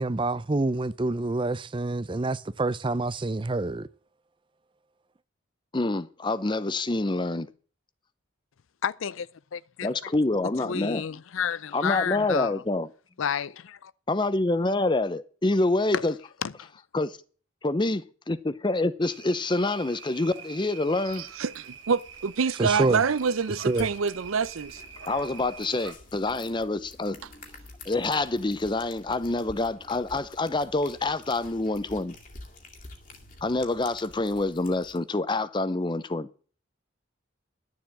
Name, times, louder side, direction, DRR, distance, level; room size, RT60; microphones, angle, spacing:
voice 1, 0.0-3.9 22.6-23.0 23.6-23.9, right 2 dB, 25° right, 0.5 m, -27 dB
voice 2, 5.7-7.5 9.8-11.1 11.7-12.9 14.1-16.2 16.9-17.2 17.6-21.3 25.1-27.2 27.9-32.2 33.4-36.3, left 2 dB, 25° left, 0.6 m, -27 dB
voice 3, 8.8-9.3 9.5-9.9 10.7-12.6 13.2-13.9 15.9-16.0 16.4-16.5, left 7 dB, 75° left, 0.5 m, -30 dB
sound 1, 19.0-25.9, right 6 dB, 65° right, 1.5 m, -45 dB
sound 2, 21.1-35.0, left 2 dB, 40° left, 2.2 m, -49 dB
voice 4, 21.1-24.8, right 5 dB, 85° right, 0.6 m, -27 dB
11.5 x 7.2 x 7.4 m
head